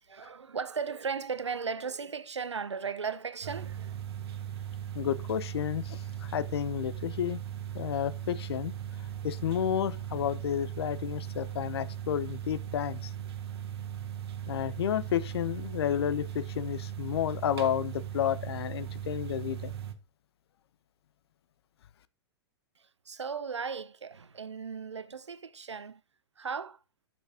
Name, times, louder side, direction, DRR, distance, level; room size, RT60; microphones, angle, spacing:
voice 1, 0.0-4.0 22.8-26.0 26.4-26.8, right 5 dB, 85° right, 0.7 m, -36 dB
sound 1, 3.4-19.9, right 10 dB, 60° right, 1.4 m, -38 dB
voice 2, 4.9-7.4 7.7-8.7 9.2-13.1 14.5-19.7, left 10 dB, 65° left, 0.7 m, -31 dB
11.0 x 6.0 x 2.9 m
figure-of-eight pair, 105°, 14 cm